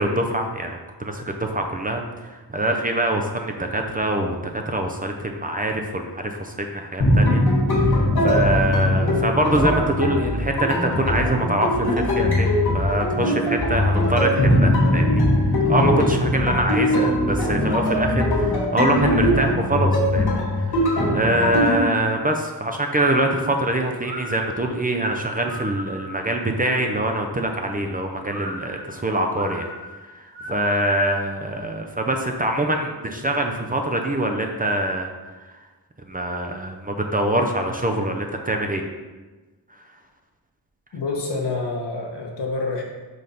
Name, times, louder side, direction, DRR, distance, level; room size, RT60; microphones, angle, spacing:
voice 1, 0.0-7.4 7.8-20.9 21.1-29.7 30.1-35.5 36.0-38.8, right 1 dB, 20° right, 2 dB, 0.4 m, -24 dB
sound 1, 7.0-21.8, left 1 dB, 65° left, 1.8 m, -20 dB
sound 2, 22.9-26.3 28.3-31.4, right 1 dB, 65° right, 2.0 m, -36 dB
voice 2, 40.9-42.8, left 3 dB, 80° left, 0 dB, 1.3 m, -27 dB
5.3 x 3.9 x 5.7 m, 1.2 s
wide cardioid pair, 170°, 41 cm